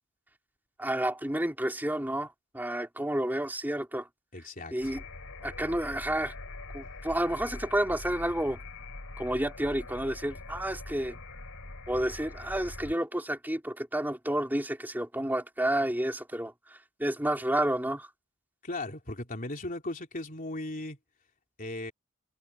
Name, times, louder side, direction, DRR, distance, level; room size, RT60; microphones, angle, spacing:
voice 1, 0.8-4.1 4.7-5.0 5.4-6.3 6.7-8.6 9.2-11.2 11.9-16.5 17.0-18.1, right 1 dB, 10° right, 3.5 m, -30 dB
voice 2, 4.3-4.9 18.6-21.0 21.6-21.9, left 2 dB, 40° left, 3.4 m, -37 dB
sound 1, 4.8-12.9, left 2 dB, 80° left, 2.9 m, -43 dB
head